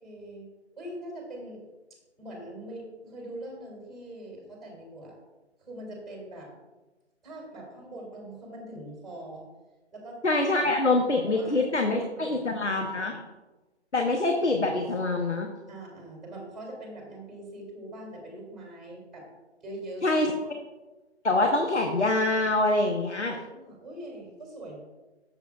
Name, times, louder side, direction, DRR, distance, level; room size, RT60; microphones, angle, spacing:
voice 1, 0.0-0.5 0.7-1.6 2.2-5.2 5.6-6.5 7.2-9.5 9.9-10.2 10.6-12.6 15.7-19.3 19.6-20.1 20.4-20.5 23.0-24.8, right 1 dB, ahead, -2 dB, 2.4 m, -43 dB
voice 2, 10.2-13.2 13.9-15.5 20.0-20.3 21.2-23.4, left 2 dB, 85° left, 3 dB, 1.0 m, -25 dB
13.0 x 7.0 x 2.4 m, 1.1 s
figure-of-eight pair, 140°, 34 cm